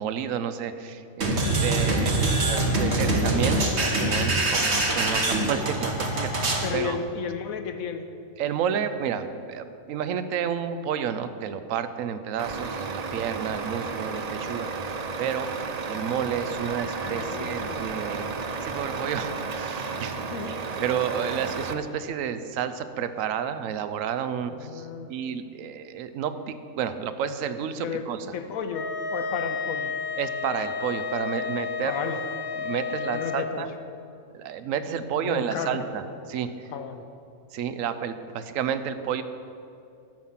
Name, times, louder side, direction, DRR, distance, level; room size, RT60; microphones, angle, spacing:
voice 1, 0.0-7.0 8.4-18.3 18.6-20.2 20.5-28.3 30.2-32.2 32.6-33.7 34.3-36.7 37.5-39.2, right 8 dB, 70° right, 11 dB, 1.0 m, -31 dB
sound 1, 1.2-6.7, right 2 dB, 50° right, 1.6 m, -24 dB
voice 2, 6.6-8.1 17.0-17.8 20.1-20.6 24.5-25.1 27.8-29.9 31.8-32.2 33.1-33.7 35.1-35.9 36.7-37.0, left 6 dB, 75° left, 7 dB, 1.1 m, -34 dB
Truck, 12.4-21.7, right 4 dB, 90° right, 0.3 m, -33 dB
Wind instrument woodwind instrument, 28.7-33.5, left 6 dB, 50° left, 0.8 m, -32 dB
12.0 x 5.7 x 7.4 m, 2.6 s
omnidirectional pair, 1.5 m